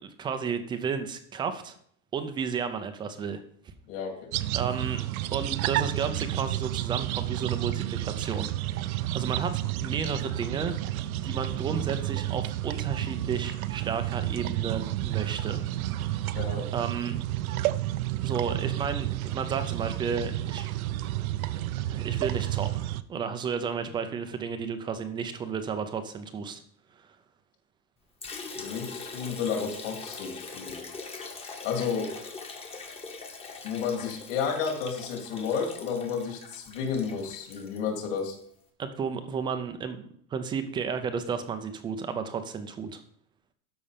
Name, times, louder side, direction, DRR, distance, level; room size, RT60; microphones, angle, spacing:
voice 1, 0.0-1.8 2.1-3.4 4.5-5.0 5.3-10.8 11.2-15.6 16.7-17.2 18.2-20.7 21.9-26.6 38.8-43.0, right 6 dB, 10° right, 8 dB, 0.4 m, -33 dB
voice 2, 3.9-4.3 16.3-16.7 28.5-30.8 31.6-32.1 33.6-38.4, left 6 dB, 50° left, 2 dB, 3.0 m, -31 dB
sound 1, 4.3-23.0, right 14 dB, 80° right, 0.7 m, -31 dB
Liquid, 28.2-38.3, left 4 dB, 15° left, 1.1 m, -42 dB
12.5 x 5.4 x 5.0 m, 0.63 s
supercardioid pair, 165°, 42 cm